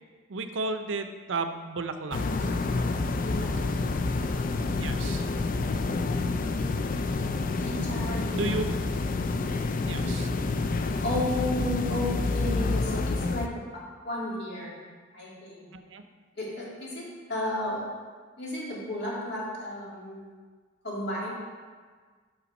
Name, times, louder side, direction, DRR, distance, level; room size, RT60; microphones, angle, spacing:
voice 1, 0.3-2.5 4.8-5.3 8.3-8.6 9.9-10.3 15.7-16.0, right 3 dB, 70° right, 8 dB, 0.6 m, -33 dB
sound 1, 2.1-13.5, left 3 dB, 45° left, 0.4 m, -28 dB
voice 2, 3.2-3.7 7.6-8.6 11.0-13.5 13.7-14.7 15.1-15.7 16.4-17.8 18.4-20.3 20.8-21.3, left 1 dB, 60° left, -5 dB, 2.2 m, -33 dB
6.6 x 5.8 x 5.3 m, 1.5 s
head